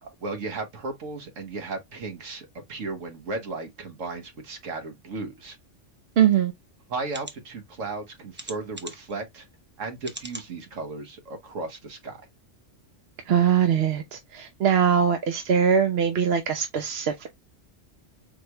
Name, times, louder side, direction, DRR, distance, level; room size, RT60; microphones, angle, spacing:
voice 1, 0.0-5.6 6.9-9.5 9.8-12.3, right 3 dB, 90° right, 1.5 m, -35 dB
voice 2, 6.2-6.5 13.3-17.3, right 8 dB, 60° right, 0.8 m, -22 dB
sound 1, 6.3-6.4 7.1-7.3 8.3-9.1 10.0-10.5 11.0-11.1 11.5-11.6, right 1 dB, 15° right, 0.4 m, -40 dB
4.3 x 3.0 x 3.2 m
omnidirectional pair, 1.3 m